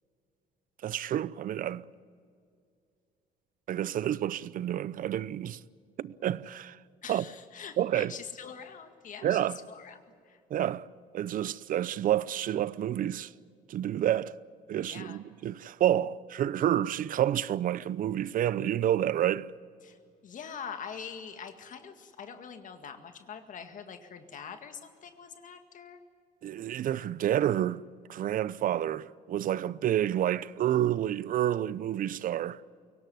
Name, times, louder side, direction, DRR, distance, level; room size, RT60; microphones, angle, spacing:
voice 1, 0.8-1.8 3.7-5.6 6.0-6.8 7.1-7.2 7.8-8.1 9.2-9.6 10.5-10.8 11.1-13.3 13.7-14.3 14.7-19.5 26.4-27.8 28.1-32.6, right 11 dB, 55° right, 0.7 m, -29 dB
voice 2, 7.0-9.4 9.7-10.4 14.8-15.2 19.8-26.0, left 7 dB, 50° left, 2.0 m, -44 dB
24.0 x 18.0 x 9.7 m
cardioid pair, 110°, 17 cm